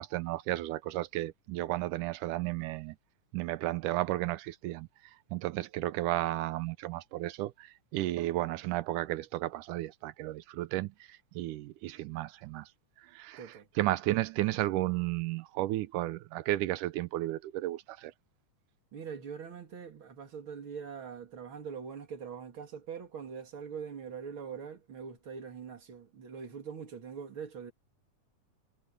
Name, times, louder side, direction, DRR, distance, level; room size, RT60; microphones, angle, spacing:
voice 1, 0.0-3.0 3.3-4.9 5.3-12.7 13.0-18.1, right 16 dB, 90° right, 2.2 m, -33 dB
voice 2, 13.4-13.7 18.9-27.7, right 6 dB, 40° right, 3.0 m, -43 dB
omnidirectional pair, 3.7 m